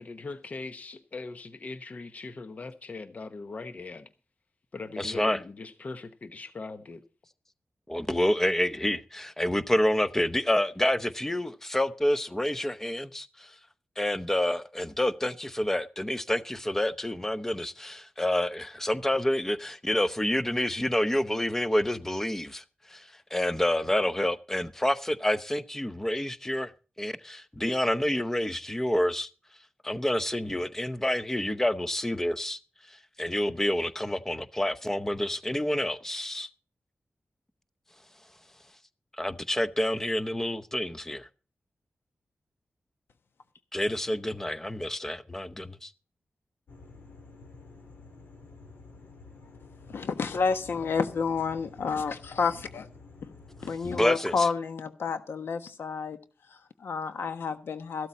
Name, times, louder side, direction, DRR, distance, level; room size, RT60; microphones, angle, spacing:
voice 1, 0.0-4.1 4.7-7.0, left 3 dB, 40° left, 1.0 m, -40 dB
voice 2, 5.0-5.4 7.9-13.5 14.0-26.7 27.0-29.3 29.8-32.6 32.9-36.5 39.2-41.3 43.7-45.9 53.8-54.5, left 1 dB, 10° left, 0.8 m, -28 dB
sound 1, 46.7-53.8, left 3 dB, 70° left, 4.5 m, -50 dB
voice 3, 49.9-52.9 53.2-53.3 53.6-56.2 56.5-58.1, left 5 dB, 90° left, 1.3 m, -30 dB
14.5 x 12.5 x 4.1 m
wide cardioid pair, 170°, 4 cm